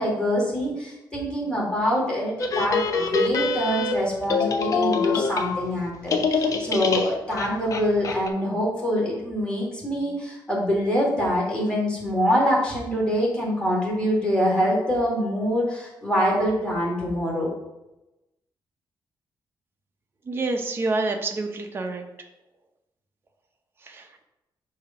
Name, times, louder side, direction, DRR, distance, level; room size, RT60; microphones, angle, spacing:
voice 1, 0.0-17.5, equal, 10° left, -5 dB, 2.1 m, -25 dB
sound 1, 2.4-5.8 6.1-8.3, left 4 dB, 45° left, 0.6 m, -25 dB
voice 2, 20.3-22.0 23.9-24.2, right 3 dB, 30° right, 3 dB, 0.7 m, -28 dB
6.6 x 2.8 x 5.7 m, 0.96 s
cardioid pair, 145°, 8 cm